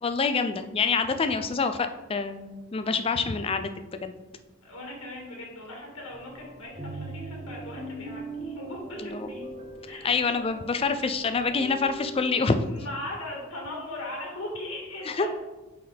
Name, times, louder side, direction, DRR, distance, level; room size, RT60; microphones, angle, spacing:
voice 1, 0.0-3.7 4.0-4.1 9.0-9.3 10.0-12.8 15.1-15.3, left 4 dB, 25° left, 8 dB, 0.4 m, -26 dB
voice 2, 4.6-9.4 9.8-10.1 12.7-15.3, left 1 dB, 75° left, -2 dB, 1.8 m, -38 dB
sound 1, 6.1-12.3, right 2 dB, 30° right, 0.8 m, -41 dB
8.5 x 3.9 x 3.4 m, 1.1 s
head